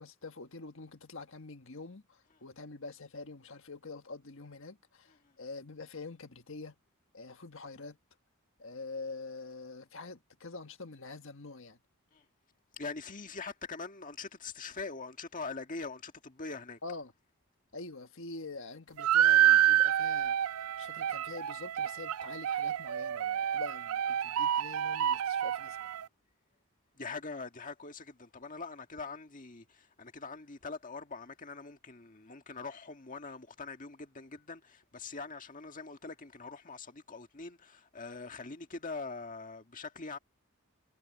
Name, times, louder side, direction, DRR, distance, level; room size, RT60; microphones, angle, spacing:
voice 1, 0.0-6.7 7.1-8.0 8.6-11.8 16.8-17.1 17.7-20.5 20.8-25.9, left 3 dB, 60° left, 1.5 m, -45 dB
voice 2, 12.7-16.8 26.9-40.2, left 4 dB, 35° left, 1.8 m, -43 dB
sound 1, 19.0-26.0, right 11 dB, 75° right, 0.4 m, -28 dB
head